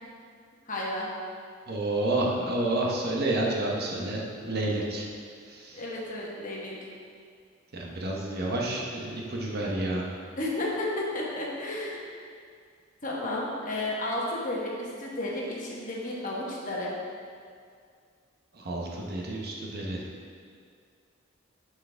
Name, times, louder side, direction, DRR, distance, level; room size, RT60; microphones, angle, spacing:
voice 1, 0.7-1.1 5.7-6.8 10.4-12.0 13.0-16.9, left 1 dB, 40° left, -4 dB, 1.2 m, -32 dB
voice 2, 1.7-5.1 5.5-5.8 7.7-10.1 18.5-20.0, right 2 dB, 50° right, -2 dB, 1.0 m, -30 dB
9.8 x 4.8 x 3.4 m, 2.2 s
head